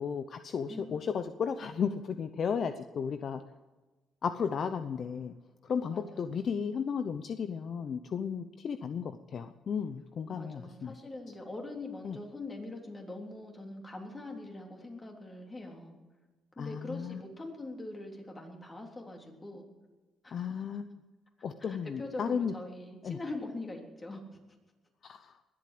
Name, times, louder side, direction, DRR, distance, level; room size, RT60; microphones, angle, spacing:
voice 1, 0.0-3.4 4.2-5.3 5.6-10.9 12.0-12.2 16.6-17.2 20.3-20.9 21.4-22.5 23.0-23.2 25.0-25.4, left 6 dB, 55° left, 10 dB, 0.7 m, -34 dB
voice 2, 0.7-1.1 5.9-6.4 10.3-16.0 16.6-19.7 20.2-20.6 21.6-24.2, left 2 dB, 25° left, 1 dB, 3.6 m, -43 dB
21.0 x 8.6 x 7.8 m, 1.2 s
cardioid pair, 90°, 0 cm